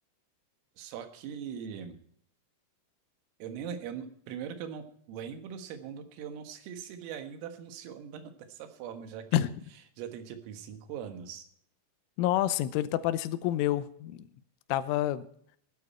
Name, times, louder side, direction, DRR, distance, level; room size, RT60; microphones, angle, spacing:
voice 1, 0.8-2.0 3.4-9.5 10.0-11.5, right 8 dB, 85° right, 8 dB, 4.1 m, -41 dB
voice 2, 12.2-14.3 14.7-15.3, left 13 dB, 80° left, 13 dB, 3.2 m, -28 dB
16.0 x 12.0 x 4.3 m, 0.64 s
omnidirectional pair, 5.8 m